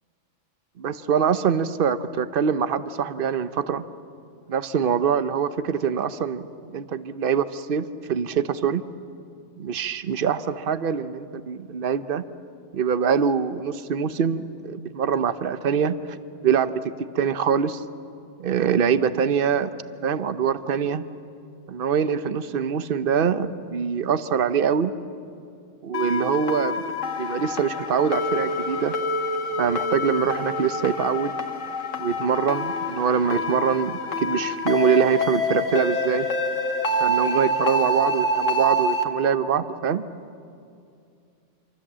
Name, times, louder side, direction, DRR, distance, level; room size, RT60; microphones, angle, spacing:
voice 1, 0.8-3.8 4.5-8.8 9.6-12.2 12.7-16.2 16.4-16.8 17.1-17.8 18.4-19.7 20.0-21.0 21.7-24.9 25.8-26.8 27.2-28.9 29.6-31.3 32.0-36.3 37.0-40.1, right 7 dB, 50° right, 12 dB, 1.0 m, -24 dB
sound 1, 25.9-39.0, left 1 dB, 85° left, 2.2 m, -26 dB
27.0 x 25.5 x 7.5 m, 2.5 s
omnidirectional pair, 1.3 m